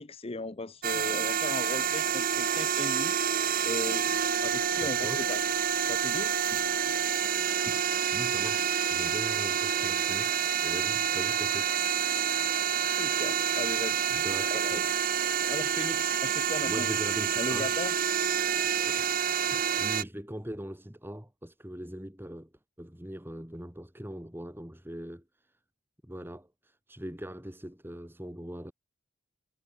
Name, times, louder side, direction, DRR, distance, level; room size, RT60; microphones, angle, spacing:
voice 1, 0.0-3.1 3.6-4.1 4.4-5.4 5.9-6.3 12.8-14.1 14.5-14.8 15.5-16.9 17.4-17.9, left 2 dB, 30° left, 0.8 m, -37 dB
sound 1, 0.8-20.0, right 8 dB, 45° right, 1.2 m, -28 dB
voice 2, 4.8-5.3 7.7-7.8 8.1-11.7 14.1-14.8 16.6-17.7 18.9-19.1 19.5-22.5 22.8-25.2 26.0-28.7, equal, 10° right, 2.5 m, -41 dB
head